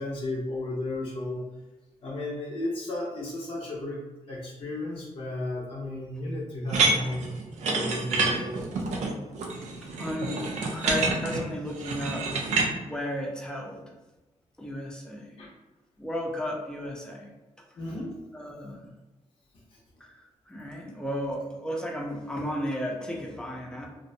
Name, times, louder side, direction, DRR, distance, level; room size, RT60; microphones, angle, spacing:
voice 1, 0.0-1.4 2.0-4.0 4.3-7.4 7.7-8.6 9.8-10.0 15.4-15.5 17.8-18.2, left 1 dB, 55° left, -6 dB, 0.6 m, -34 dB
sound 1, 6.7-12.7, right 3 dB, 80° right, 0.5 m, -27 dB
voice 2, 10.0-10.4 10.7-12.5 12.8-13.9 14.6-15.5 16.0-17.3 18.3-18.9 20.0-23.9, equal, 5° left, 0 dB, 0.5 m, -34 dB
2.5 x 2.1 x 2.6 m, 1.1 s
cardioid pair, 80°, 12 cm